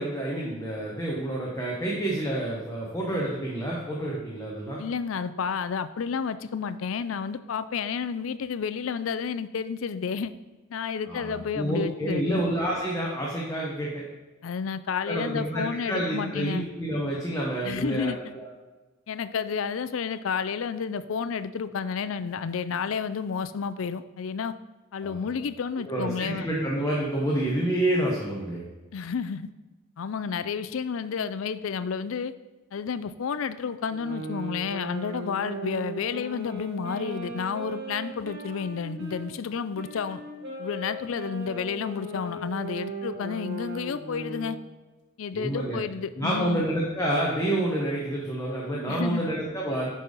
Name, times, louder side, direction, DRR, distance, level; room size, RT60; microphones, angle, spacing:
voice 1, 0.0-4.8 11.1-14.0 15.0-18.5 25.0-25.3 25.8-28.6 45.3-45.8 46.2-49.9, right 1 dB, 15° left, -4 dB, 1.2 m, -28 dB
voice 2, 4.8-10.3 10.7-12.4 14.4-16.7 17.6-18.2 19.1-24.5 24.9-26.5 28.9-29.5 30.0-32.3 32.7-40.2 40.6-44.6 45.2-46.7 48.9-49.3, left 6 dB, 75° left, 13 dB, 0.4 m, -31 dB
sound 1, 33.9-39.3 39.7-44.6, right 1 dB, 60° right, 1.5 m, -38 dB
10.0 x 4.2 x 5.2 m, 1.2 s
head